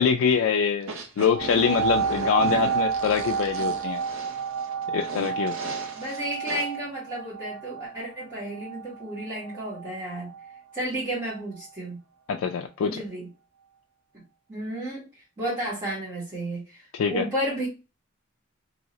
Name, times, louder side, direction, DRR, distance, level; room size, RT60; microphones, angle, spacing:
voice 1, 0.0-4.0 4.9-5.6 12.3-13.0 16.9-17.2, left 6 dB, 70° left, 0.3 m, -24 dB
sound 1, 0.8-6.7, right 2 dB, 70° right, 0.6 m, -37 dB
sound 2, 1.3-10.6 11.2-11.3, right 7 dB, 45° right, 0.8 m, -30 dB
voice 2, 5.9-10.3 10.7-12.0 12.8-13.3 14.5-15.0 15.4-17.7, right 1 dB, 20° right, 1.5 m, -32 dB
2.7 x 2.7 x 2.9 m
head